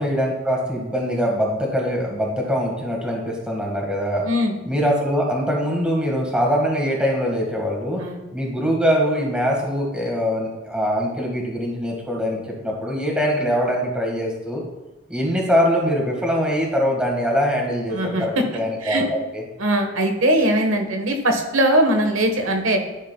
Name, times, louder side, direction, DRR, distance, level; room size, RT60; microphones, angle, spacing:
voice 1, 0.0-4.2 4.6-8.0 8.3-14.6 15.1-19.4, equal, 5° right, -2 dB, 1.6 m, -23 dB
voice 2, 17.9-18.4 18.8-19.0 19.6-22.8, right 1 dB, 75° right, 5 dB, 1.2 m, -20 dB
12.5 x 6.4 x 2.2 m, 1.1 s
head